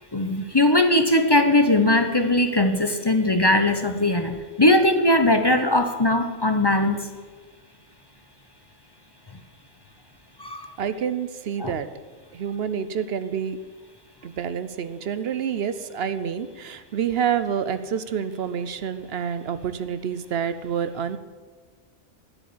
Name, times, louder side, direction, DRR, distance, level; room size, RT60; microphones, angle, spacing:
voice 1, 0.1-7.0 10.4-10.7 11.6-11.7, left 1 dB, 25° left, 6 dB, 0.6 m, -20 dB
voice 2, 10.8-11.9 12.3-13.6 14.2-21.2, right 8 dB, 55° right, 12 dB, 0.8 m, -28 dB
10.0 x 8.8 x 8.3 m, 1.4 s
omnidirectional pair, 1.4 m